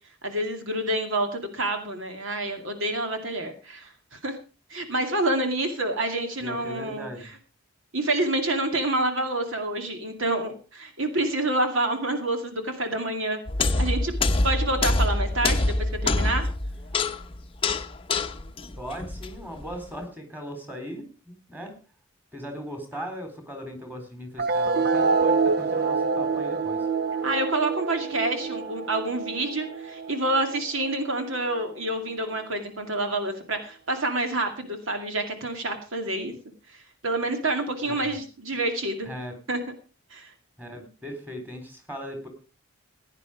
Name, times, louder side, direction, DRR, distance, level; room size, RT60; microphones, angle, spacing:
voice 1, 0.2-4.4 4.7-7.1 7.9-13.4 13.8-14.1 14.4-16.5 27.2-36.3 36.7-39.1 39.5-39.6 40.1-40.3, right 2 dB, 65° right, 5 dB, 2.3 m, -28 dB
voice 2, 6.4-7.3 18.8-21.8 22.3-26.9 36.2-36.3 37.8-38.2 39.0-39.4 40.6-42.3, equal, 10° right, 5 dB, 3.8 m, -38 dB
sound 1, 13.5-19.7, left 2 dB, 25° left, 0.8 m, -25 dB
sound 2, 24.4-31.4, right 4 dB, 45° right, 0.7 m, -26 dB
16.5 x 9.9 x 5.0 m, 0.36 s
head